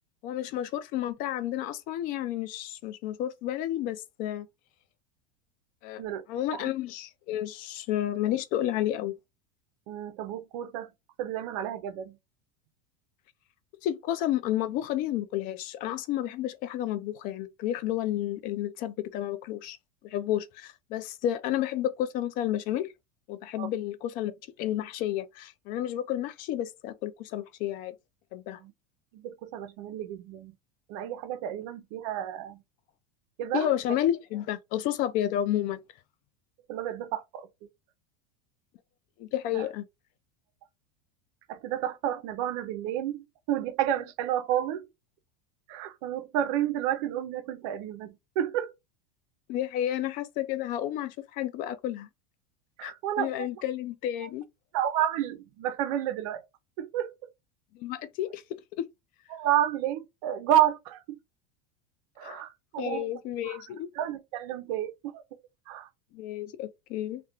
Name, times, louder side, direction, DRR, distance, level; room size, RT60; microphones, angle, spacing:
voice 1, 0.2-4.5 5.8-6.0 6.3-9.1 13.8-19.8 20.0-22.9 23.3-24.3 24.6-27.9 28.3-28.6 33.5-35.8 39.2-39.8 49.5-52.1 52.8-54.4 57.7-58.4 58.8-58.9 62.2-62.4 62.8-63.9 66.1-67.2, left 12 dB, 45° left, 0.4 m, -31 dB
voice 2, 9.9-10.9 11.2-12.2 23.6-23.7 28.6-28.7 29.1-30.5 30.9-32.6 33.4-33.7 36.7-37.5 39.5-39.6 41.5-44.9 45.7-48.7 52.8-53.5 54.2-54.3 54.7-56.4 56.8-57.3 59.3-61.2 62.2-63.1 63.4-63.6 63.9-65.2 65.7-65.9, right 11 dB, 60° right, 0.5 m, -30 dB
2.4 x 2.1 x 2.8 m
supercardioid pair, 125°, 19 cm